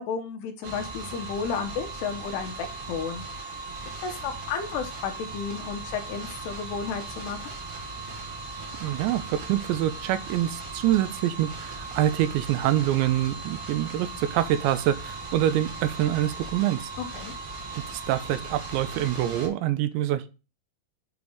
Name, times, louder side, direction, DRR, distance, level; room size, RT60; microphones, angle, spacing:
voice 1, 0.0-3.7 4.0-7.6 17.0-17.3, left 6 dB, 80° left, 6 dB, 2.6 m, -33 dB
sound 1, 0.6-19.5, right 3 dB, 55° right, 1.6 m, -38 dB
voice 2, 8.8-16.9 17.9-20.3, right 12 dB, 85° right, 12 dB, 2.8 m, -25 dB
7.9 x 3.2 x 5.3 m, 0.31 s
omnidirectional pair, 5.2 m